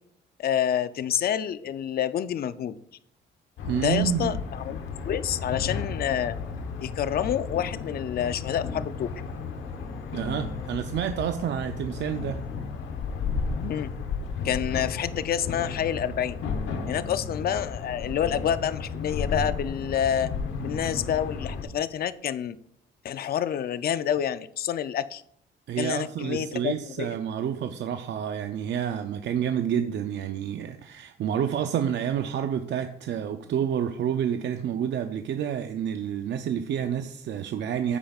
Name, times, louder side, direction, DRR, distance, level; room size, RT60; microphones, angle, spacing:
voice 1, 0.4-2.8 3.7-6.3 6.8-9.1 13.6-13.9 14.4-16.4 16.9-20.3 20.6-22.6 23.0-25.2 25.8-27.1, left 9 dB, 50° left, 0.5 m, -28 dB
sound 1, 3.6-21.6, left 5 dB, 75° left, 1.1 m, -33 dB
voice 2, 3.6-4.4 10.1-12.4 25.7-38.0, right 9 dB, 65° right, 0.5 m, -29 dB
13.5 x 5.1 x 2.4 m
cardioid pair, 90°, 20 cm